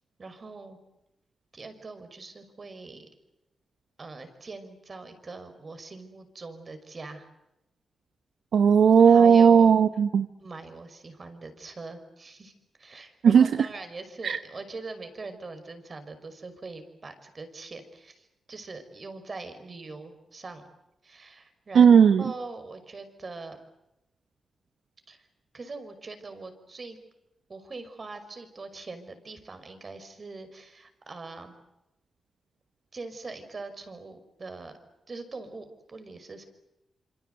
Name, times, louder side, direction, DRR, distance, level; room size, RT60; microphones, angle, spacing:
voice 1, 0.2-0.8 1.5-3.1 4.0-7.3 9.0-9.7 10.4-12.5 12.8-20.6 21.0-23.6 25.1-25.3 25.5-27.0 27.5-31.6 32.9-34.7 35.1-36.4, right 3 dB, 45° right, 9 dB, 5.7 m, -42 dB
voice 2, 8.5-10.3 13.2-13.5 14.2-14.4 21.7-22.2, right 7 dB, 80° right, 10 dB, 1.0 m, -16 dB
27.5 x 26.0 x 8.1 m, 0.89 s
cardioid pair, 75°, 0 cm